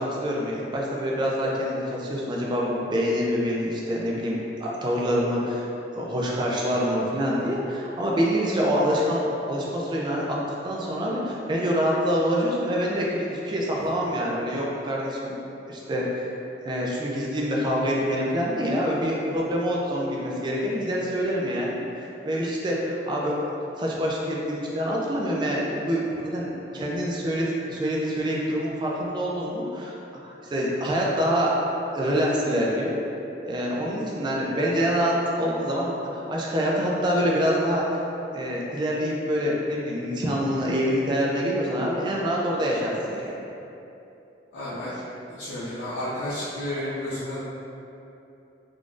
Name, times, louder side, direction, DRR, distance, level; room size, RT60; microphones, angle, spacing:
voice 1, 0.0-5.7 5.9-10.4 10.6-15.4 15.7-16.3 16.6-21.8 22.2-23.4 23.8-30.0 30.2-31.5 31.9-33.0 33.4-38.0 38.3-43.4, equal, 25° right, -4 dB, 0.3 m, -26 dB
voice 2, 44.5-45.0 45.3-47.4, left 1 dB, 75° left, -13 dB, 0.7 m, -31 dB
3.7 x 2.4 x 2.4 m, 2.9 s
head